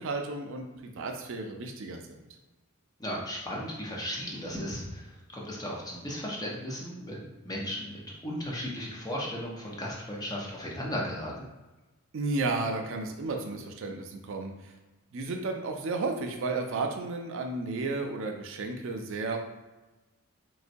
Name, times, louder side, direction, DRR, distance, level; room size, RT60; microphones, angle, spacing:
voice 1, 0.0-2.2 12.1-14.7 15.1-19.4, right 3 dB, 60° right, 3 dB, 0.4 m, -33 dB
voice 2, 3.0-11.3, equal, 20° left, -4 dB, 0.6 m, -36 dB
4.0 x 2.2 x 2.6 m, 1.1 s
head